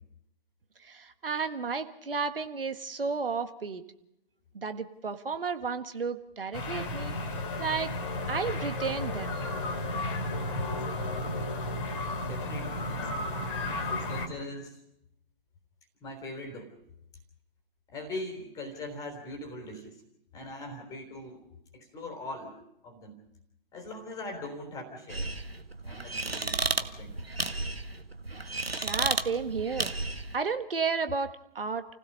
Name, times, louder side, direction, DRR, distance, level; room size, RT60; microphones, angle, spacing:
voice 1, 0.8-3.9 4.5-7.1 7.6-7.9 8.3-9.4 28.8-29.9 30.3-31.9, right 5 dB, 70° right, 9 dB, 1.6 m, -32 dB
sound 1, 6.5-14.3, left 2 dB, 30° left, 3.0 m, -33 dB
voice 2, 12.1-13.3 13.9-14.8 16.0-16.7 17.9-20.0 20.3-21.4 21.7-23.2 23.7-25.3 25.8-27.1, left 1 dB, 10° left, 3 dB, 3.5 m, -41 dB
sound 2, 25.1-30.4, right 2 dB, 90° right, 1.5 m, -33 dB
29.5 x 16.5 x 5.5 m, 0.81 s
figure-of-eight pair, 135°, 29 cm